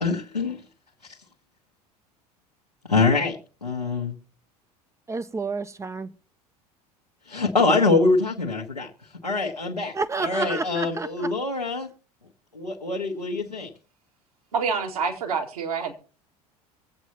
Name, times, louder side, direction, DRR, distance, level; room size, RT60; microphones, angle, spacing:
voice 1, 0.0-0.6 2.9-3.4 3.6-4.1 7.3-8.9 9.2-9.9 10.2-11.9 12.5-13.7, left 3 dB, 90° left, 1.1 m, -24 dB
voice 2, 5.1-6.1 10.0-11.1, right 4 dB, 15° right, 0.5 m, -29 dB
voice 3, 14.5-15.9, right 5 dB, 70° right, 1.9 m, -27 dB
24.0 x 8.0 x 2.9 m
figure-of-eight pair, 70°, 20 cm